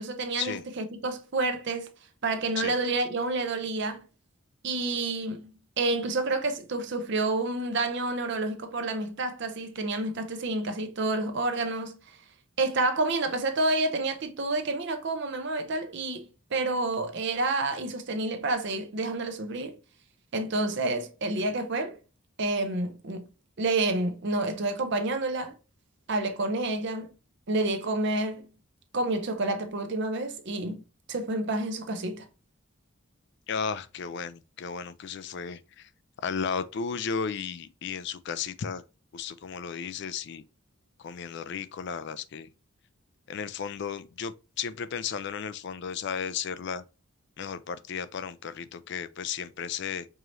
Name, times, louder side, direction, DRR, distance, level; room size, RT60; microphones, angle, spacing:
voice 1, 0.0-1.9 2.2-4.0 4.6-5.5 5.8-12.2 12.6-19.8 20.3-22.0 22.4-23.2 23.6-25.6 26.1-27.1 27.5-28.5 28.9-30.8 31.1-32.3, right 2 dB, 55° right, 0.6 m, -29 dB
voice 2, 33.5-35.9 36.2-38.8 39.1-40.4 41.0-42.5 43.3-46.8 47.4-50.1, left 6 dB, 55° left, 0.4 m, -34 dB
4.7 x 3.0 x 2.5 m
head